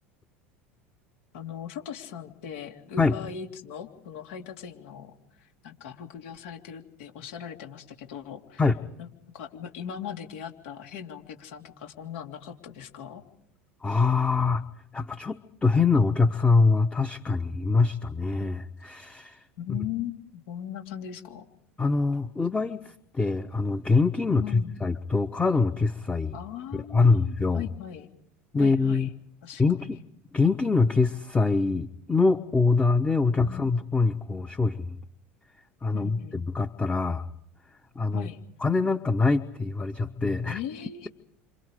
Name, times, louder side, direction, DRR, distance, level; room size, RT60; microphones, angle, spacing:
voice 1, 1.3-8.6 9.0-9.1 9.3-13.2 19.6-21.4 24.3-24.8 26.3-28.1 28.6-29.1 29.4-29.9 33.4-33.6 35.9-36.4 38.1-38.4 40.4-41.1, left 9 dB, 70° left, 4 dB, 3.1 m, -39 dB
voice 2, 13.8-14.6 14.9-19.4 19.7-19.8 21.8-26.4 26.9-27.6 28.5-29.1 29.6-30.0 30.3-35.0 35.8-37.3 37.9-38.3 38.6-40.6, left 4 dB, 15° left, 10 dB, 1.1 m, -24 dB
29.0 x 27.0 x 5.0 m, 0.74 s
hypercardioid pair, 80°, 7 cm